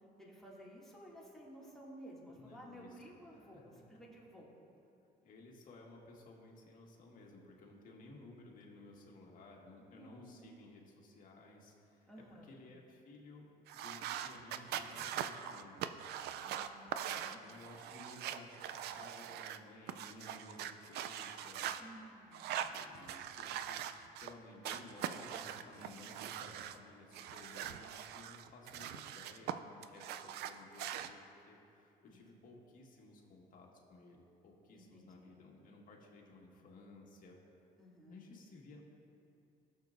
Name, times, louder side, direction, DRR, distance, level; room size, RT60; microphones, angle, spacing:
voice 1, 0.0-4.5 9.8-10.5 12.1-12.5 16.4-17.4 21.8-22.5 32.1-32.2 34.7-35.3 37.8-38.2, equal, ahead, -6 dB, 2.2 m, -55 dB
voice 2, 2.4-3.6 5.2-15.8 17.1-21.8 22.7-23.9 24.2-31.2 31.5-37.4 38.1-38.8, left 2 dB, 55° left, -1 dB, 1.7 m, -56 dB
sound 1, 13.7-19.6 19.9-21.8 22.3-24.3 24.6-26.8 27.1-29.5 29.8-31.1, right 10 dB, 75° right, 0.4 m, -42 dB
16.0 x 6.8 x 2.6 m, 2.6 s
cardioid pair, 110°, 17 cm